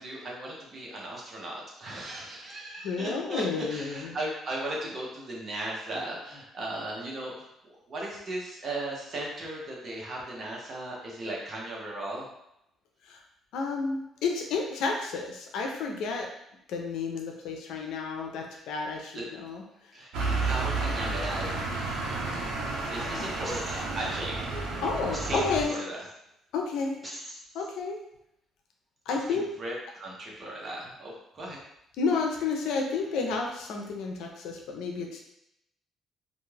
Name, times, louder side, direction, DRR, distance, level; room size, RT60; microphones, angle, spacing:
voice 1, 0.0-7.5 7.9-12.3 19.1-19.3 19.9-21.8 22.9-24.4 25.2-26.0 29.1-31.6, right 1 dB, 40° right, -3 dB, 0.9 m, -37 dB
voice 2, 2.8-4.2 13.1-13.2 13.5-16.3 16.7-19.6 23.1-23.3 24.8-25.7 26.5-27.0 27.5-28.0 29.1-29.4 32.0-35.3, left 4 dB, 80° left, 1 dB, 0.5 m, -31 dB
sound 1, 20.1-25.6, right 2 dB, 80° right, 0.5 m, -31 dB
sound 2, 23.4-24.1 25.1-26.1 27.0-27.7, equal, 15° right, 0.9 m, -43 dB
2.5 x 2.2 x 3.2 m, 0.81 s
cardioid pair, 105°, 0 cm